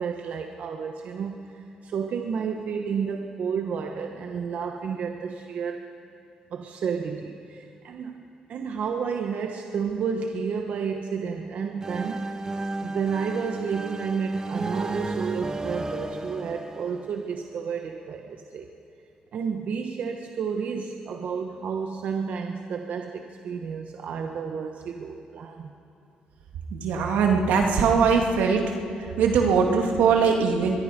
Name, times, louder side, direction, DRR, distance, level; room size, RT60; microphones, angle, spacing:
voice 1, 0.0-5.9 6.5-8.2 8.5-12.3 12.8-18.7 19.3-25.7, right 6 dB, 65° right, 4 dB, 1.2 m, -31 dB
sound 1, 11.8-17.6, right 2 dB, 25° right, 1.0 m, -33 dB
voice 2, 26.7-28.6 29.2-30.8, right 5 dB, 85° right, 2 dB, 2.4 m, -21 dB
23.0 x 22.0 x 5.3 m, 2.5 s
cardioid pair, 85°, 3 cm